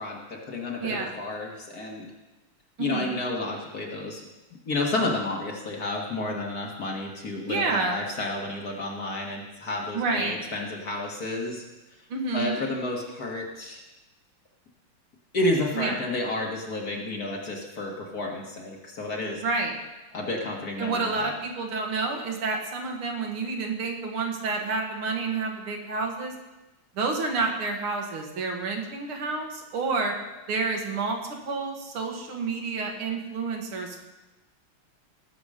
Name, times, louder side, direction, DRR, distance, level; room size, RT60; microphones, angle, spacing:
voice 1, 0.0-2.1 2.8-4.2 4.7-11.6 12.3-13.8 15.3-19.4 20.1-21.3, left 2 dB, 45° left, 0 dB, 2.0 m, -31 dB
voice 2, 0.8-1.1 2.8-3.2 7.5-8.0 9.9-10.3 12.1-12.6 15.7-15.9 19.4-19.8 20.8-26.3 27.0-30.2 30.5-34.0, right 4 dB, 75° right, 2 dB, 2.4 m, -29 dB
17.5 x 7.1 x 5.1 m, 1.1 s
omnidirectional pair, 2.4 m